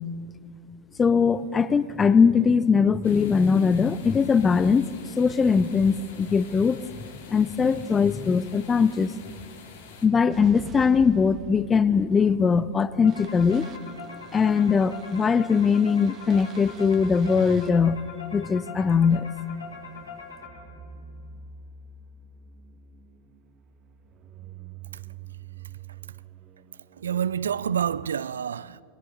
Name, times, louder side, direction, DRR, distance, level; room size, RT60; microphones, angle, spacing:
voice 1, 1.0-6.8 7.3-9.1 10.0-13.6 14.3-18.0 18.3-19.3, left 5 dB, 20° left, 0.6 m, -21 dB
sound 1, 3.0-10.1, left 5 dB, 60° left, 2.5 m, -47 dB
sound 2, 10.3-28.1, right 7 dB, 35° right, 1.3 m, -46 dB
Insomniac Snyth Loop, 13.0-20.9, left 6 dB, 75° left, 5.5 m, -42 dB
voice 2, 27.0-28.8, right 8 dB, 65° right, 0.4 m, -28 dB
29.0 x 22.5 x 4.0 m
figure-of-eight pair, 90°, 0 cm